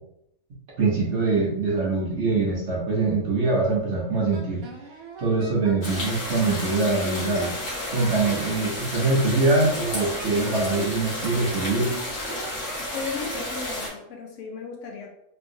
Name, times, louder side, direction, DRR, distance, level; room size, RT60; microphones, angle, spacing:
voice 1, 0.8-4.6 5.2-7.5 7.9-11.9, right 3 dB, 55° right, -4 dB, 1.0 m, -23 dB
Wind instrument woodwind instrument, 4.3-6.2 6.6-8.6 9.1-11.1 11.6-13.5, right 4 dB, 75° right, 1.1 m, -42 dB
sound 1, 5.8-13.9, left 1 dB, 45° left, 1.5 m, -32 dB
voice 2, 12.8-15.1, left 5 dB, 65° left, 1 dB, 0.9 m, -35 dB
3.5 x 2.9 x 2.6 m, 0.77 s
omnidirectional pair, 1.5 m